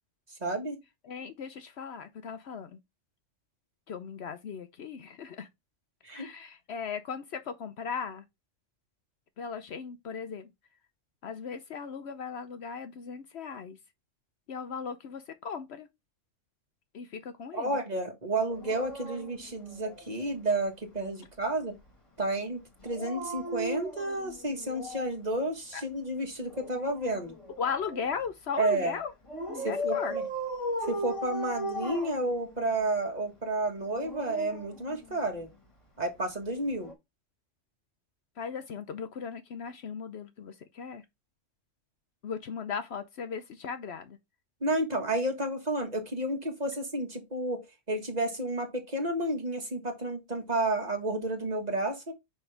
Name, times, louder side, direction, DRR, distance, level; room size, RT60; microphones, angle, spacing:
voice 1, 0.4-0.8 6.0-6.3 17.5-21.7 22.2-27.4 28.6-29.0 29.6-30.2 30.9-35.5 36.0-36.9 44.6-52.1, right 2 dB, 35° right, 1.6 m, -31 dB
voice 2, 1.0-2.8 3.9-5.5 6.1-8.2 9.4-10.5 11.2-13.8 14.5-15.9 16.9-17.7 25.7-25.8 27.6-29.1 29.5-30.2 38.4-41.0 42.2-44.2, left 6 dB, 60° left, 0.9 m, -37 dB
Dog, 18.5-20.4 22.8-25.2 26.5-28.1 29.3-32.8 33.8-35.5 36.7-36.9, equal, 25° left, 1.6 m, -37 dB
5.7 x 5.4 x 3.3 m
omnidirectional pair, 1.3 m